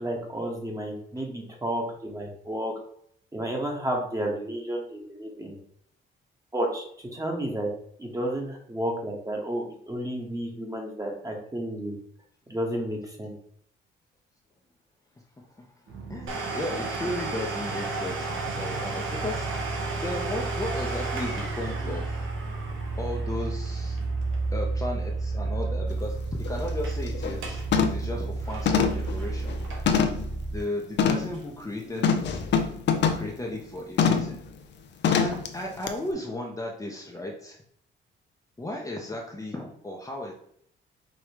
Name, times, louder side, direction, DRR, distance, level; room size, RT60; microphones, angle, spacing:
voice 1, 0.0-2.7 3.3-5.6 6.5-7.7 8.0-11.9 12.5-13.3, right 1 dB, 15° right, 0 dB, 1.3 m, -31 dB
voice 2, 15.4-15.7 16.1-19.5 20.0-22.3 23.0-24.0 24.5-27.6 27.9-29.6 30.5-32.4 33.1-34.4 35.1-37.6 38.6-40.3, left 1 dB, 15° left, -1 dB, 0.8 m, -35 dB
sound 1, 15.9-30.6, right 3 dB, 65° right, 1.2 m, -32 dB
Domestic sounds home sounds, 16.3-25.7 26.0-26.1 26.6-27.0 27.3-27.7 28.0-30.1 30.6-30.7 31.3-31.4, right 3 dB, 80° right, 1.0 m, -35 dB
sound 2, 25.9-26.0 26.4-26.7 27.1-27.4 27.7-28.1 28.7-30.3 31.0-31.3 32.0-33.3 34.0-34.4 35.0-35.5 35.9-36.0, left 6 dB, 60° left, 0.6 m, -24 dB
5.0 x 3.0 x 3.0 m, 0.65 s
cardioid pair, 90°, 20 cm